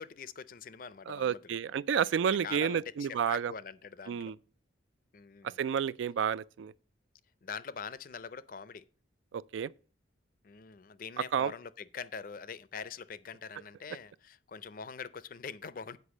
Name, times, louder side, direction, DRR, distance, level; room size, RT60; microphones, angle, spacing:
voice 1, 0.0-1.6 2.4-4.3 5.1-5.6 7.4-8.9 10.4-16.0, left 6 dB, 45° left, 0.4 m, -44 dB
voice 2, 1.1-3.5 4.1-4.4 5.6-6.7 9.3-9.7 11.3-11.5, right 7 dB, 80° right, 0.3 m, -30 dB
8.3 x 5.3 x 6.0 m
head